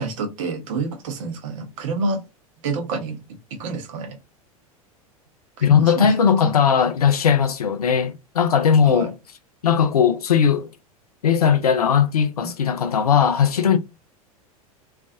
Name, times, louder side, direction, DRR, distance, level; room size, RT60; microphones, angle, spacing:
voice 1, 0.0-2.2 2.6-3.2 3.5-4.2 5.6-6.1 6.4-6.6 8.8-9.1 12.4-12.5, right 3 dB, 55° right, 0.9 m, -28 dB
voice 2, 5.6-9.2 9.6-10.7 11.2-13.8, left 7 dB, 80° left, 0.4 m, -18 dB
2.5 x 2.4 x 2.6 m
figure-of-eight pair, 85°, 19 cm